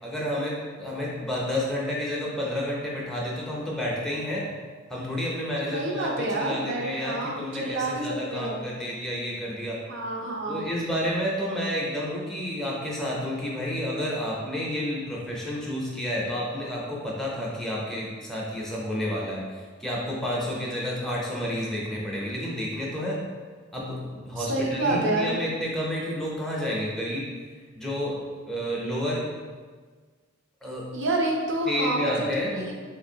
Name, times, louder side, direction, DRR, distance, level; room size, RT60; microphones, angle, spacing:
voice 1, 0.0-4.5 4.9-9.8 10.5-23.2 23.7-27.3 27.7-28.2 28.5-29.3 30.6-30.9 31.7-32.7, equal, ahead, -5 dB, 0.5 m, -30 dB
voice 2, 5.7-8.7 9.9-10.7 24.4-25.3 30.9-32.3 32.5-32.7, right 2 dB, 60° right, -1 dB, 0.6 m, -28 dB
4.0 x 2.5 x 2.7 m, 1.5 s
head